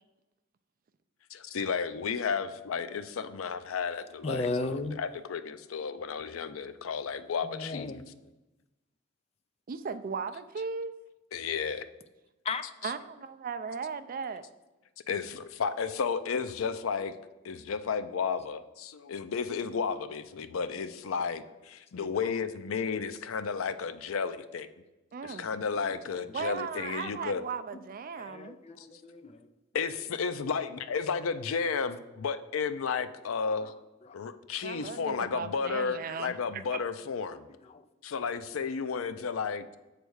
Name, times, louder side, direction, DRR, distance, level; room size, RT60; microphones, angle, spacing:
voice 1, 1.3-4.5 5.0-7.9 11.3-11.9 15.1-17.1 17.4-24.7 25.2-27.4 29.7-33.7 34.1-37.4 38.0-39.8, left 5 dB, 85° left, 12 dB, 0.5 m, -33 dB
voice 2, 4.2-5.0 7.4-8.3 12.4-12.7 16.4-17.0 20.7-20.8 22.0-22.4 25.8-26.4 27.7-27.8 28.2-29.5 33.6-34.2 34.7-35.4 36.6-36.8 37.3-37.9, left 3 dB, 30° left, 10 dB, 0.4 m, -38 dB
voice 3, 9.7-10.9 12.8-14.5 25.1-25.5 26.3-28.6 34.6-36.8, right 5 dB, 45° right, 11 dB, 0.4 m, -37 dB
8.0 x 3.4 x 6.2 m, 1.0 s
head